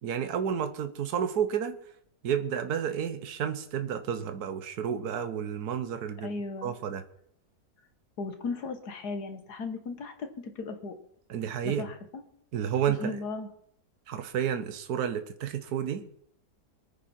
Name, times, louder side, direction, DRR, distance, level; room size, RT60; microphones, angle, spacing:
voice 1, 0.0-1.8 2.2-6.3 6.6-7.0 11.3-11.8 12.5-13.1 14.1-16.2, right 8 dB, 75° right, 9 dB, 1.5 m, -31 dB
voice 2, 6.2-6.7 8.2-10.9 11.7-12.2 13.0-13.5, left 3 dB, 85° left, 7 dB, 2.0 m, -36 dB
24.5 x 9.7 x 4.4 m, 0.68 s
omnidirectional pair, 1.7 m